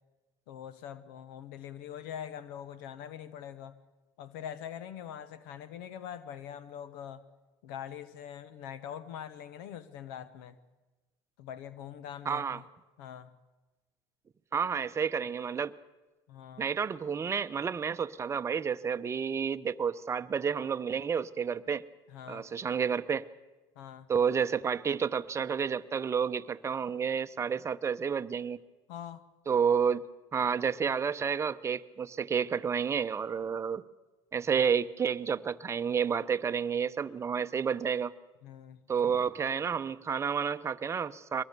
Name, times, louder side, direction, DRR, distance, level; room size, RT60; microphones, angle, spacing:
voice 1, 0.5-3.8 4.2-7.3 7.6-10.6 11.4-12.6 13.0-13.3 16.3-16.7 22.1-22.4 23.7-24.1 28.9-29.2 38.4-38.8, left 9 dB, 85° left, 14 dB, 1.0 m, -43 dB
voice 2, 12.3-12.6 14.5-15.7 16.6-21.8 22.3-23.3 24.1-28.6 29.5-30.1 30.3-33.8 34.3-38.1 38.9-41.4, right 6 dB, 25° right, 11 dB, 0.7 m, -30 dB
22.5 x 19.0 x 6.8 m, 1.2 s
supercardioid pair, 100°, 11 cm